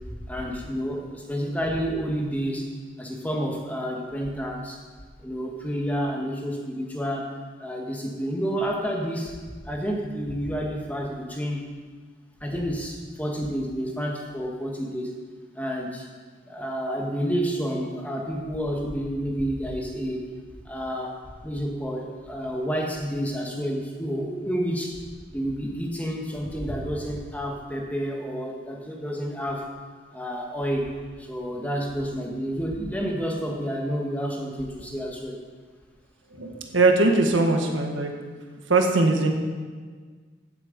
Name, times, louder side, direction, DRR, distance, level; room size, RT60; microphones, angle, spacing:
voice 1, 0.3-2.7 3.0-4.8 5.2-7.3 7.6-9.4 9.6-11.6 12.4-15.1 15.5-16.1 16.5-20.2 20.6-25.0 25.3-29.7 30.1-30.9 31.2-35.4, equal, 10° left, 0 dB, 1.5 m, -29 dB
voice 2, 36.3-38.1 38.7-39.3, right 3 dB, 90° right, 3 dB, 1.6 m, -21 dB
15.5 x 7.7 x 5.3 m, 1.5 s
head